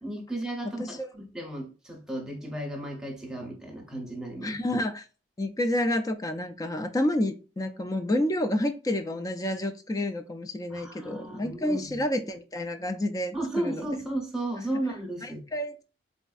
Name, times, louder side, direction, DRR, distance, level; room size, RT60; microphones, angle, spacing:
voice 1, 0.0-4.6 10.7-12.0 13.3-15.4, right 1 dB, 5° right, 0.7 m, -34 dB
voice 2, 0.6-1.1 4.4-5.1 5.4-13.8 15.2-15.8, left 1 dB, 20° left, 0.3 m, -29 dB
4.0 x 2.6 x 2.4 m
head